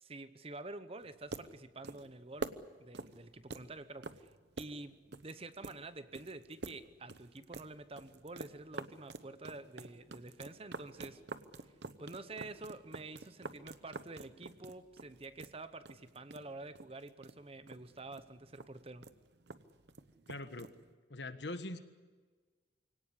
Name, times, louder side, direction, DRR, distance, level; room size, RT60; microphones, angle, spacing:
voice 1, 0.0-4.3 4.6-11.2 12.0-19.1, right 2 dB, 30° right, 12 dB, 0.9 m, -48 dB
sound 1, 1.0-20.9, right 3 dB, 65° right, 1.0 m, -49 dB
voice 2, 20.3-20.7 21.1-21.8, left 2 dB, 65° left, 9 dB, 1.5 m, -42 dB
24.0 x 18.0 x 9.9 m, 1.4 s
head